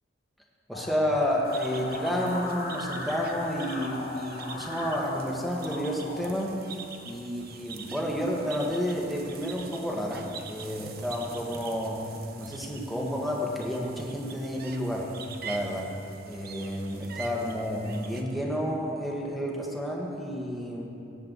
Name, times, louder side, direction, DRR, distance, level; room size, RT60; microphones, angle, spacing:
sound 1, 0.7-6.3, left 2 dB, 55° left, 1.3 m, -38 dB
voice 1, 0.7-6.5 7.0-12.0 12.4-15.1 15.4-15.9 16.2-20.9, equal, ahead, -3 dB, 1.5 m, -30 dB
sound 2, 1.5-18.2, right 5 dB, 55° right, 0.8 m, -45 dB
17.0 x 9.9 x 4.0 m, 2.7 s
head